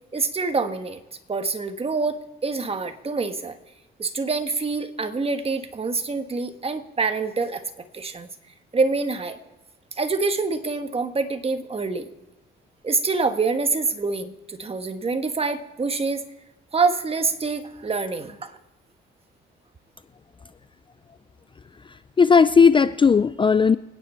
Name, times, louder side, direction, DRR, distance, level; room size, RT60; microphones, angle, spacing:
voice 1, 0.1-1.0 1.3-3.6 4.0-7.6 7.9-8.3 8.7-9.4 10.0-12.1 12.8-16.2 16.7-18.6, right 4 dB, 30° right, 8 dB, 1.4 m, -26 dB
voice 2, 21.9-23.8, left 5 dB, 25° left, 14 dB, 0.4 m, -16 dB
27.0 x 9.8 x 4.4 m, 1.0 s
cardioid pair, 90°, 20 cm